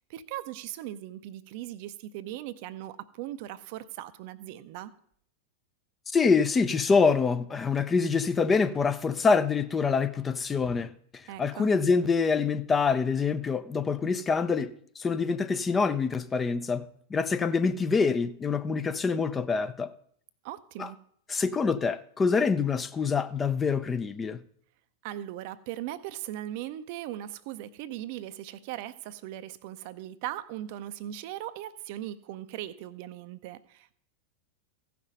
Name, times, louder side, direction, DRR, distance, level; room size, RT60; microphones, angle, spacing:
voice 1, 0.1-4.9 11.3-11.7 20.4-21.0 25.0-34.0, right 13 dB, 45° right, 0.5 m, -39 dB
voice 2, 6.1-19.9 20.8-20.9 21.3-24.4, left 5 dB, 15° left, 0.5 m, -26 dB
15.5 x 6.0 x 5.2 m
figure-of-eight pair, 90°, 0 cm